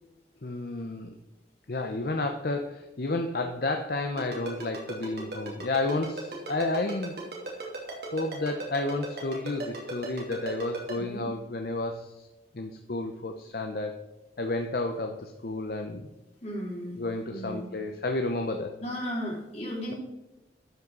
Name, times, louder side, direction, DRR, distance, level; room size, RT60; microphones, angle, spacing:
voice 1, 0.4-1.1 1.7-7.2 8.1-12.3 12.5-14.0 14.4-16.1 17.0-18.7, left 2 dB, 55° left, 5 dB, 0.8 m, -31 dB
Ringtone, 4.2-10.9, right 2 dB, 60° right, 2.7 m, -36 dB
voice 2, 16.4-17.0 17.3-17.7 18.8-20.0, equal, 40° left, -3 dB, 3.3 m, -35 dB
12.5 x 5.6 x 3.9 m, 1.0 s
head